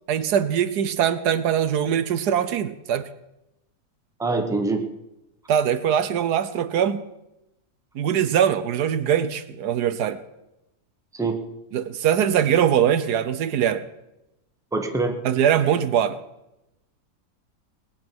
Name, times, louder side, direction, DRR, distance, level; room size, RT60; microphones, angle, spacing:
voice 1, 0.1-3.1 5.5-7.0 7.9-10.2 11.7-13.8 15.2-16.2, right 9 dB, 80° right, 12 dB, 1.4 m, -22 dB
voice 2, 4.2-4.8 11.1-11.4 14.7-15.2, right 3 dB, ahead, 4 dB, 1.1 m, -24 dB
19.5 x 9.0 x 6.1 m, 0.90 s
omnidirectional pair, 1.7 m